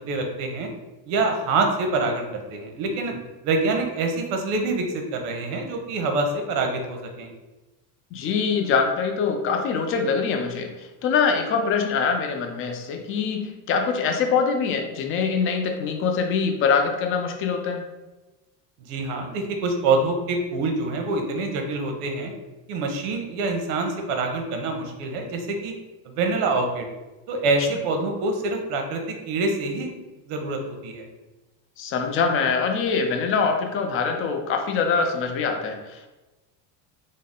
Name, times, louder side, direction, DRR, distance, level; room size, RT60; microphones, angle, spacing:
voice 1, 0.1-0.7 1.1-3.1 3.4-7.3 18.9-22.3 22.7-25.7 26.0-26.9 27.3-29.9 30.3-31.1, right 3 dB, 75° right, 3 dB, 0.9 m, -26 dB
voice 2, 8.1-17.8 31.8-36.1, left 5 dB, 30° left, 4 dB, 0.4 m, -24 dB
3.8 x 2.0 x 3.6 m, 1.1 s
cardioid pair, 135°, 45 cm